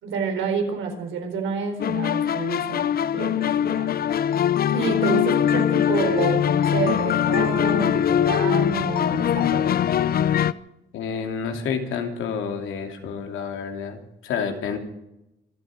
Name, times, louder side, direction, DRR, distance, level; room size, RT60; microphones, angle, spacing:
voice 1, 0.0-3.9 4.7-9.7, right 5 dB, 85° right, 4 dB, 4.3 m, -29 dB
sound 1, 1.8-10.5, left 9 dB, 50° left, 0.6 m, -22 dB
voice 2, 10.9-14.8, left 6 dB, 85° left, 5 dB, 2.8 m, -29 dB
25.5 x 8.8 x 6.3 m, 0.88 s
cardioid pair, 90°, 20 cm